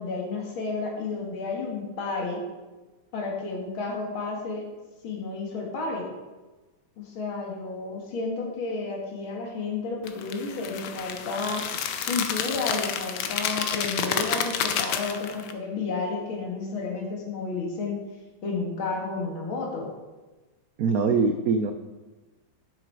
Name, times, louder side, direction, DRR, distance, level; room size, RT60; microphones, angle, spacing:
voice 1, 0.0-2.4 3.1-4.7 5.0-6.1 7.0-11.7 12.1-18.0 18.4-19.9, left 3 dB, 85° left, 1 dB, 2.5 m, -31 dB
sound 1, 10.1-15.5, left 7 dB, 65° left, 1.2 m, -30 dB
voice 2, 20.8-21.7, right 4 dB, 75° right, 7 dB, 0.8 m, -23 dB
10.0 x 7.4 x 4.7 m, 1.2 s
omnidirectional pair, 2.2 m